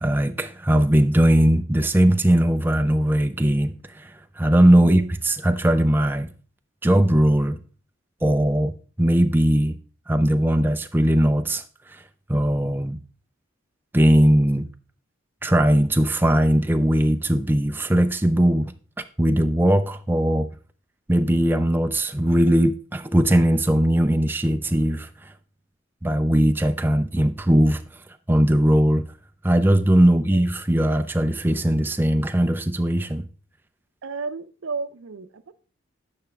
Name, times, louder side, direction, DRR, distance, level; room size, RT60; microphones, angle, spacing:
voice 1, 0.0-6.3 6.8-7.6 8.2-9.7 10.1-11.6 12.3-13.0 13.9-14.7 15.4-18.7 19.2-20.5 21.1-25.1 26.0-27.8 28.3-29.0 29.4-33.3, right 1 dB, 10° right, 0.4 m, -19 dB
voice 2, 4.8-5.1 30.0-30.4 34.0-35.5, right 4 dB, 80° right, 0.5 m, -34 dB
8.9 x 5.8 x 3.4 m
head